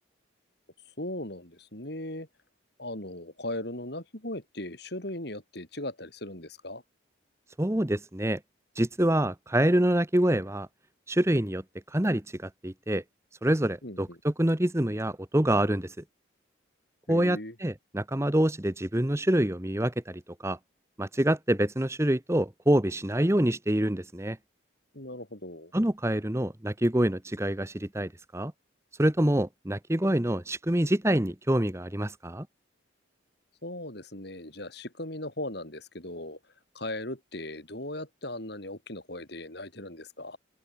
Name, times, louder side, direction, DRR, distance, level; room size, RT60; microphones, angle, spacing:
voice 1, 1.0-2.3 2.8-6.8 13.8-14.2 17.1-17.6 24.9-25.7 33.6-36.4 36.7-40.4, left 1 dB, 55° left, 4.6 m, -38 dB
voice 2, 7.6-8.4 8.8-10.7 11.1-11.6 11.9-12.2 12.6-13.0 13.4-15.9 17.1-20.6 21.0-24.4 25.7-28.5 29.0-32.5, right 1 dB, 15° right, 1.0 m, -26 dB
head